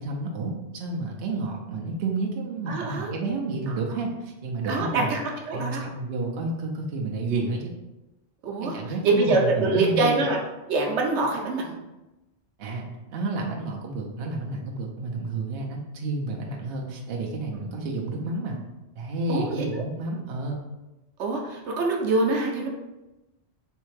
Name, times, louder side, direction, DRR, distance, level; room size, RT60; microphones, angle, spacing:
voice 1, 0.0-5.1 5.5-7.7 8.6-10.2 12.6-18.6 18.9-20.6, right 3 dB, 65° right, 0 dB, 0.9 m, -30 dB
voice 2, 2.7-3.1 3.7-3.8 4.7-5.2 5.5-5.8 8.4-10.4 10.7-11.8 17.5-17.7 19.3-19.8 21.2-22.7, right 3 dB, 85° right, 0 dB, 1.0 m, -25 dB
3.5 x 3.2 x 3.2 m, 1.0 s
omnidirectional pair, 1.1 m